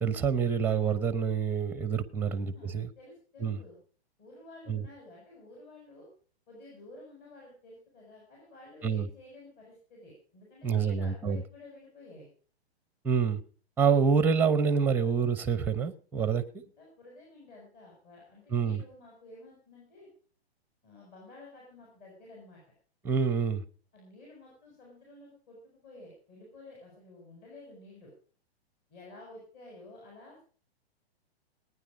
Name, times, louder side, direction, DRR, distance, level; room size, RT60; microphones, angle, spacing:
voice 1, 0.0-2.9 3.4-3.6 4.7-4.8 8.8-9.1 10.6-11.4 13.0-13.4 13.8-16.6 18.5-18.8 23.0-23.6, right 6 dB, 5° right, 15 dB, 0.7 m, -27 dB
voice 2, 2.2-3.8 4.2-6.1 6.5-12.3 16.6-20.1 20.8-22.6 23.9-28.1 28.9-30.4, left 2 dB, 35° left, -2 dB, 6.9 m, -52 dB
19.0 x 9.6 x 5.2 m, 0.42 s
hypercardioid pair, 140°, 32 cm